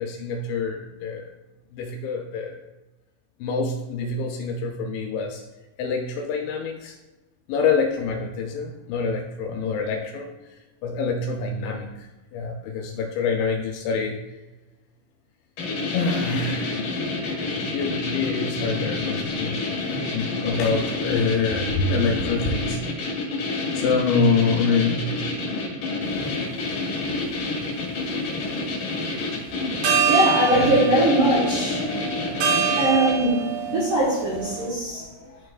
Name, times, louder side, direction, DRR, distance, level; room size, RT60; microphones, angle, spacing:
voice 1, 0.0-1.3 1.7-2.6 3.4-5.4 5.8-7.0 7.5-10.3 10.8-12.1 12.3-14.2 15.9-19.6 20.1-22.8 23.7-25.1 29.6-29.7 30.5-30.8 32.1-32.2 32.8-33.0 34.6-35.4, left 4 dB, 80° left, 2 dB, 2.7 m, -26 dB
sound 1, 15.6-33.3, left 3 dB, 55° left, 2.6 m, -28 dB
sound 2, 26.1-26.3 27.0-28.0 29.4-29.5 29.8-34.7, right 6 dB, 90° right, 4.0 m, -26 dB
voice 2, 30.1-31.8 32.8-35.0, right 1 dB, 70° right, -7 dB, 2.0 m, -21 dB
12.0 x 4.4 x 2.4 m, 1.1 s
omnidirectional pair, 5.7 m